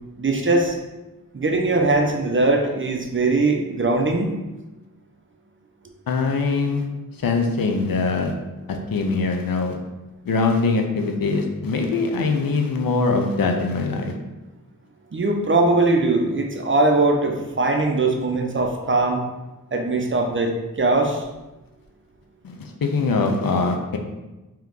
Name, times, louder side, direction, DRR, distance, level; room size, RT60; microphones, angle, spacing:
voice 1, 0.2-0.8 1.3-4.3 15.1-19.2 19.7-21.2, right 2 dB, 35° right, 3 dB, 0.6 m, -20 dB
voice 2, 6.1-6.9 7.2-8.3 8.7-9.8 10.3-14.1 22.4-24.0, left 4 dB, 90° left, 3 dB, 0.6 m, -22 dB
3.4 x 3.0 x 3.7 m, 1.1 s
wide cardioid pair, 65°, 34 cm